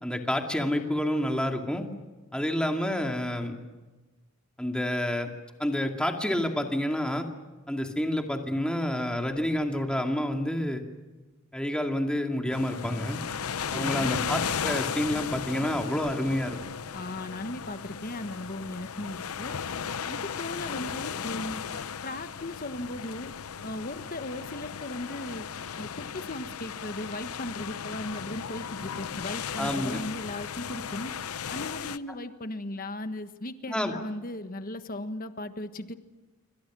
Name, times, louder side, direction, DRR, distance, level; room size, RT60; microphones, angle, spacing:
voice 1, 0.0-1.9 2.3-3.5 4.6-5.3 5.6-7.3 7.7-10.8 11.5-13.2 13.7-16.6 29.6-30.0 33.7-33.9, left 1 dB, 5° left, 3 dB, 2.2 m, -28 dB
sound 1, 12.5-32.0, left 7 dB, 85° left, 0.7 m, -35 dB
voice 2, 13.7-14.2 16.9-19.6 20.0-21.6 22.0-23.3 23.6-25.5 25.8-31.1 31.5-35.9, left 1 dB, 40° left, 9 dB, 1.4 m, -37 dB
27.0 x 25.0 x 6.2 m, 1.2 s
head